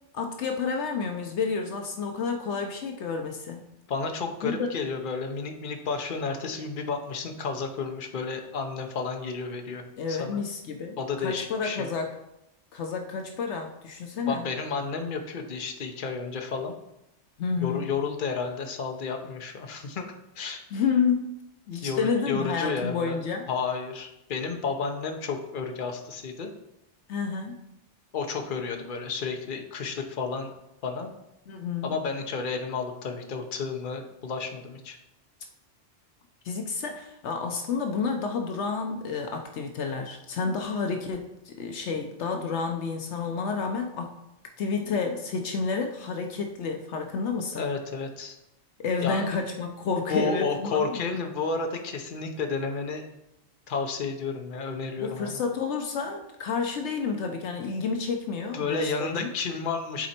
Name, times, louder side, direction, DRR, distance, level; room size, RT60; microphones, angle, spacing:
voice 1, 0.1-3.6 4.4-4.7 10.0-12.1 12.7-14.5 17.4-17.8 20.7-21.3 21.7-23.5 27.1-27.6 31.5-31.9 36.4-44.1 44.6-47.7 48.8-51.0 55.0-59.3, left 5 dB, 75° left, 4 dB, 1.0 m, -30 dB
voice 2, 3.9-9.8 10.1-10.4 11.0-11.9 14.3-16.7 17.6-20.0 20.4-20.6 21.8-23.2 23.5-26.5 28.1-30.5 30.8-31.1 31.8-35.0 47.5-48.4 49.0-49.2 50.1-53.0 53.7-55.4 58.5-60.1, left 4 dB, 50° left, 4 dB, 1.0 m, -31 dB
10.0 x 4.2 x 4.3 m, 0.87 s
omnidirectional pair, 1.2 m